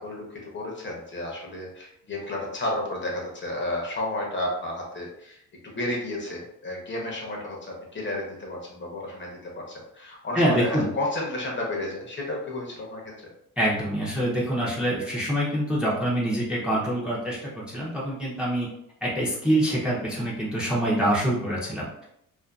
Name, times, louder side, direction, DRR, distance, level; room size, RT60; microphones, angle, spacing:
voice 1, 0.0-13.0, left 1 dB, 35° left, -2 dB, 0.7 m, -32 dB
voice 2, 10.3-10.8 13.6-18.7 19.0-22.0, right 1 dB, 5° right, -6 dB, 0.5 m, -25 dB
2.5 x 2.3 x 2.3 m, 0.78 s
cardioid pair, 120°, 33 cm